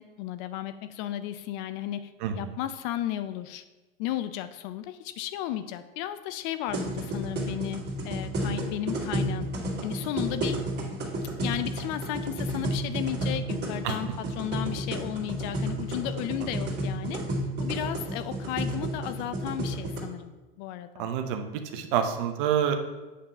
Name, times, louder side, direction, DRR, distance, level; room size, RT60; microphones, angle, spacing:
voice 1, 0.0-3.6 4.0-9.5 9.8-10.6 11.2-17.2 17.6-21.1, left 12 dB, 55° left, 11 dB, 0.5 m, -34 dB
sound 1, 6.7-20.0, right 1 dB, 35° right, 2.3 m, -31 dB
voice 2, 21.0-22.8, right 8 dB, 60° right, 6 dB, 0.8 m, -27 dB
8.4 x 3.7 x 5.4 m, 1.2 s
hypercardioid pair, 100°, 29 cm